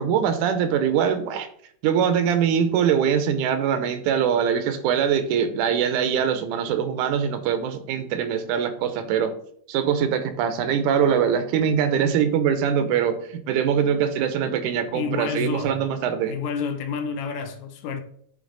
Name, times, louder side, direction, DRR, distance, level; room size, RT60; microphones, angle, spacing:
voice 1, 0.0-1.5 1.8-9.4 9.7-16.4, right 8 dB, 90° right, 2.1 m, -23 dB
voice 2, 14.9-15.8 16.3-18.0, left 5 dB, 75° left, 2.0 m, -29 dB
8.5 x 3.3 x 3.9 m
omnidirectional pair, 3.5 m